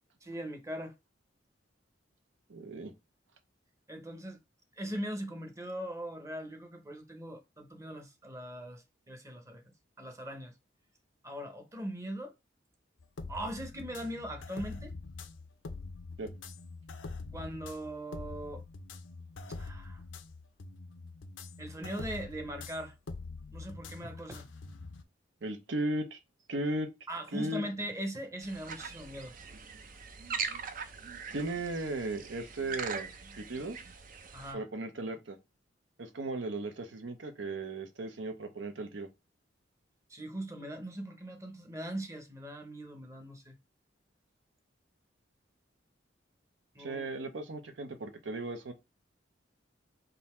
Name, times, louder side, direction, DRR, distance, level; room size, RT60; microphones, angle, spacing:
voice 1, 0.2-0.9 3.9-4.4 4.8-10.5 11.2-12.3 13.3-14.9 17.3-18.6 19.6-20.0 21.6-22.9 23.5-24.5 27.1-29.3 34.3-34.6 40.1-43.6 46.7-47.1, right 1 dB, 15° right, 0.8 m, -40 dB
voice 2, 2.5-2.9 16.2-16.3 25.4-26.2 26.5-26.9 27.3-27.6 31.3-33.1 33.4-33.8 34.5-35.4 36.0-39.1 46.8-48.7, right 2 dB, 75° right, 0.8 m, -36 dB
sound 1, 13.0-25.0, left 3 dB, 80° left, 0.6 m, -45 dB
sound 2, 28.4-34.5, right 5 dB, 45° right, 0.5 m, -41 dB
3.9 x 2.7 x 4.3 m
head